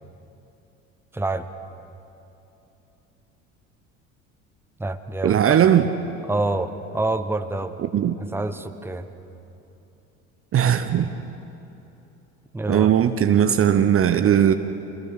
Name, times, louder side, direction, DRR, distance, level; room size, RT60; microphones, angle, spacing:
voice 1, 1.1-1.5 4.8-5.6 6.3-7.7 8.2-9.1 12.5-12.9, right 2 dB, 5° right, 10 dB, 1.1 m, -27 dB
voice 2, 5.2-5.9 7.9-8.1 10.5-11.1 12.7-14.5, right 9 dB, 35° right, 10 dB, 0.9 m, -18 dB
27.5 x 18.5 x 6.5 m, 2.9 s
figure-of-eight pair, 65°, 41 cm